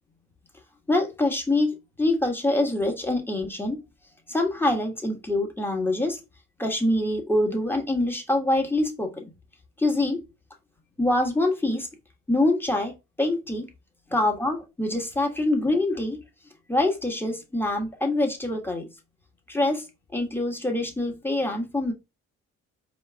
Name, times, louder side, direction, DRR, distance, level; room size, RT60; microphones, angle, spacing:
voice 1, 0.9-3.8 4.3-6.2 6.6-9.3 9.8-10.2 11.0-11.9 12.3-12.9 13.2-13.7 14.1-16.2 16.7-18.9 19.5-19.9 20.1-21.9, left 1 dB, 5° left, 1.5 m, -25 dB
4.6 x 3.2 x 3.5 m
cardioid pair, 90°, 30 cm